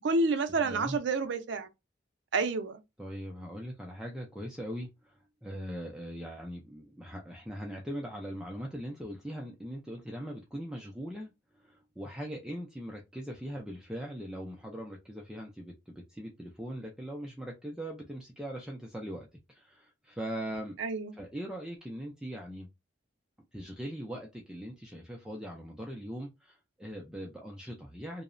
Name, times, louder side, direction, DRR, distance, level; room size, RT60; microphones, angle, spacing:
voice 1, 0.0-1.7 2.3-2.8 20.8-21.1, right 3 dB, 65° right, 0.4 m, -29 dB
voice 2, 0.6-1.0 3.0-20.8 21.1-22.7 23.5-28.2, equal, 5° right, 0.3 m, -41 dB
2.8 x 2.0 x 2.4 m
head